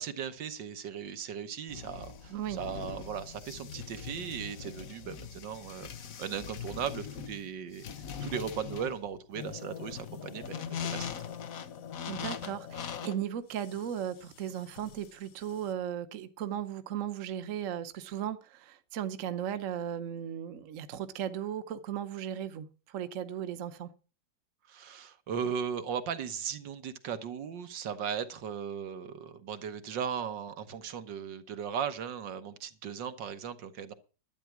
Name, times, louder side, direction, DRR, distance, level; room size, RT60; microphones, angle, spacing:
voice 1, 0.0-7.9 8.2-11.1 24.7-33.9, right 7 dB, 75° right, 1.8 m, -37 dB
sound 1, 1.7-15.7, left 7 dB, 55° left, 1.2 m, -42 dB
voice 2, 2.3-2.6 12.1-23.9, right 10 dB, 50° right, 1.1 m, -36 dB
12.0 x 9.0 x 6.0 m
omnidirectional pair, 2.0 m